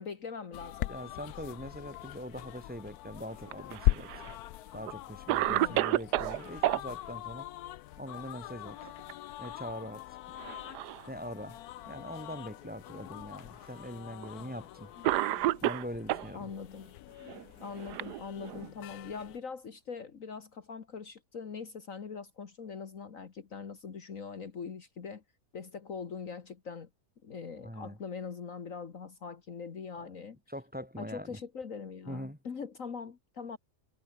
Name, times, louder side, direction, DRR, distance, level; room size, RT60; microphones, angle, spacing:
voice 1, 0.0-0.9 5.5-5.9 16.3-16.9 17.6-25.2 25.5-26.9 27.2-30.4 31.0-33.6, left 5 dB, 55° left, 1.9 m, -42 dB
sound 1, 0.5-19.4, left 15 dB, 75° left, 1.1 m, -40 dB
voice 2, 0.9-4.1 4.7-7.5 8.0-8.8 9.4-10.2 11.1-11.6 11.9-14.9 15.6-16.5 27.6-28.0 30.5-31.4 32.1-32.4, equal, 5° right, 3.1 m, -42 dB
Cough, 3.5-4.3 4.9-5.0 5.3-6.8 8.7-9.1 9.4-9.6 10.4-11.1 11.9-12.0 13.0-13.1 14.2-14.4 15.0-16.3 17.3-18.7, right 15 dB, 85° right, 1.2 m, -31 dB
omnidirectional pair, 1.7 m